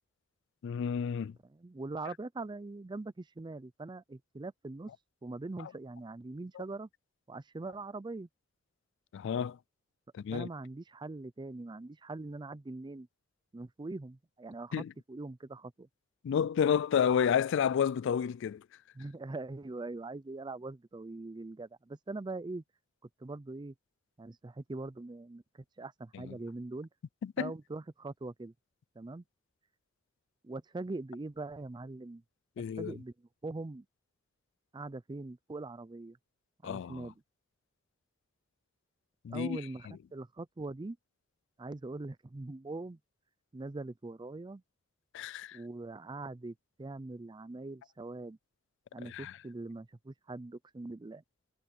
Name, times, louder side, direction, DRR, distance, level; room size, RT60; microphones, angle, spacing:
voice 1, 0.6-1.3 9.1-9.6 10.2-10.5 14.7-14.9 16.2-18.6 26.1-26.3 27.4-27.5 32.6-32.9 36.6-37.1 39.2-39.6 45.1-45.6 49.1-49.3, left 8 dB, 60° left, 0.3 m, -30 dB
voice 2, 1.4-4.9 5.2-6.9 7.3-8.3 10.3-13.1 13.5-15.9 18.9-22.6 23.2-23.7 24.2-26.9 27.4-28.5 29.0-29.2 30.4-32.2 32.8-33.9 34.7-36.2 36.6-37.1 39.3-41.0 41.6-43.0 43.5-44.6 45.5-48.4 48.9-51.2, right 2 dB, 20° right, 0.4 m, -42 dB
head